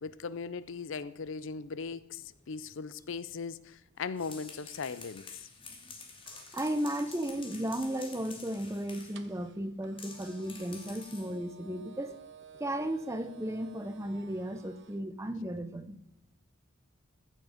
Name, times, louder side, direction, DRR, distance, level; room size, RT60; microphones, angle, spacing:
voice 1, 0.0-5.5, left 5 dB, 60° left, 0.5 m, -39 dB
sound 1, 4.0-9.2 10.0-11.4, left 4 dB, 25° left, 1.8 m, -49 dB
sound 2, 6.2-15.0, right 6 dB, 60° right, 0.8 m, -55 dB
voice 2, 6.5-12.2 12.6-16.0, right 1 dB, 15° right, 0.7 m, -35 dB
15.0 x 6.5 x 5.0 m
head